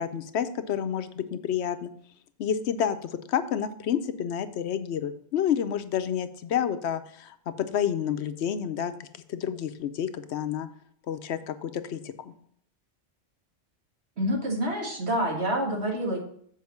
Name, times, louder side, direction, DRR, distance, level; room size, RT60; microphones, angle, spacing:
voice 1, 0.0-1.9 2.4-10.7 11.1-12.3, left 9 dB, 80° left, 11 dB, 0.9 m, -29 dB
voice 2, 14.2-16.2, equal, 70° right, 0 dB, 2.0 m, -27 dB
7.5 x 4.9 x 5.8 m, 0.65 s
omnidirectional pair, 1.1 m